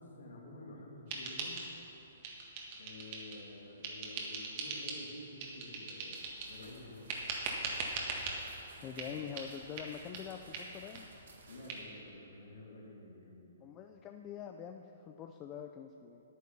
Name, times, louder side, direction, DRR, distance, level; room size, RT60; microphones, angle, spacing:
voice 1, 0.0-1.9 2.8-7.1 8.7-9.2 11.5-13.6, left 1 dB, 80° left, -2 dB, 2.4 m, -51 dB
sound 1, 1.1-1.9 2.2-3.4 3.8-5.0 5.4-6.6 7.1-8.4 9.0-9.1 9.4-9.5 9.8-9.9 10.1-10.2 10.5-10.6 10.9-11.0 11.3-11.4 11.7-11.8, right 4 dB, 35° right, 1.6 m, -40 dB
sound 2, 6.1-11.8, right 3 dB, 75° right, 1.9 m, -58 dB
voice 2, 8.8-11.1 13.6-16.2, left 8 dB, 20° left, 5 dB, 0.4 m, -45 dB
9.3 x 9.2 x 6.0 m, 2.9 s
hypercardioid pair, 160°, 0 cm